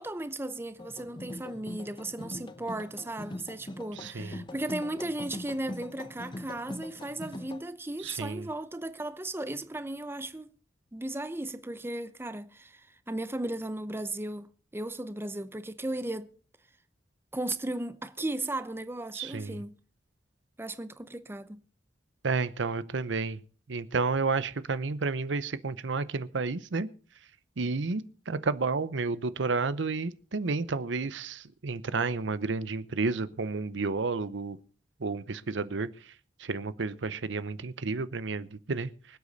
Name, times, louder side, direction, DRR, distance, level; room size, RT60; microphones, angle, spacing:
voice 1, 0.0-10.5 10.9-14.5 14.7-16.3 17.3-19.7 20.6-21.6, right 1 dB, 15° right, 0.7 m, -36 dB
sound 1, 0.8-7.6, left 1 dB, 25° left, 0.9 m, -42 dB
voice 2, 3.9-4.4 8.0-8.5 19.1-19.6 22.2-23.4 23.7-26.9 27.6-34.6 35.0-36.1 36.4-39.2, right 4 dB, 80° right, 0.7 m, -31 dB
25.0 x 8.3 x 4.1 m
head